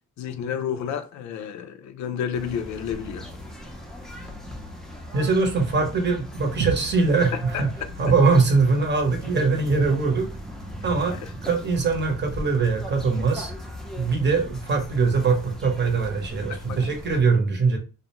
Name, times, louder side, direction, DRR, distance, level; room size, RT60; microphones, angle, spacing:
voice 1, 0.2-3.3 7.3-7.6 11.2-11.3 16.5-16.8, left 8 dB, 65° left, 0.4 m, -31 dB
sound 1, 2.3-17.2, left 1 dB, ahead, 0.5 m, -39 dB
voice 2, 5.1-7.7 8.0-10.3 10.8-13.5 14.0-17.8, right 4 dB, 35° right, 0.8 m, -22 dB
sound 2, 6.6-11.0, right 6 dB, 90° right, 0.5 m, -37 dB
2.4 x 2.1 x 2.8 m
cardioid pair, 90°, 30 cm